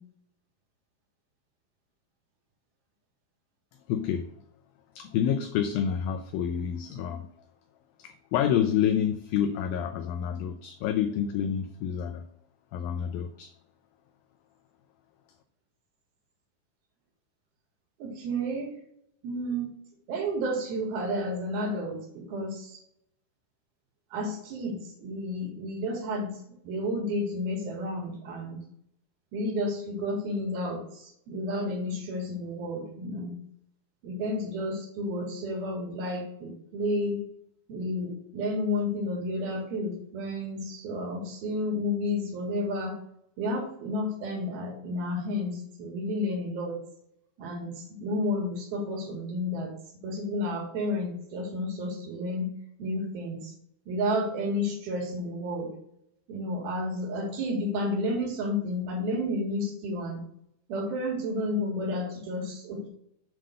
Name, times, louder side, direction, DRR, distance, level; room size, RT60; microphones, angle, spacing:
voice 1, 3.9-4.3 5.0-7.3 8.0-12.3 12.7-13.5, left 9 dB, 80° left, 6 dB, 2.1 m, -28 dB
voice 2, 18.0-18.7 19.2-19.7 20.1-22.8 24.1-26.3 26.6-28.6 29.3-33.3 34.0-37.2 37.7-43.0 43.4-46.8 47.4-49.7 50.0-52.5 52.8-53.5 53.9-55.7 56.3-60.2 60.7-62.9, left 1 dB, 70° right, 1 dB, 3.5 m, -31 dB
7.7 x 3.8 x 6.5 m, 0.72 s
omnidirectional pair, 4.6 m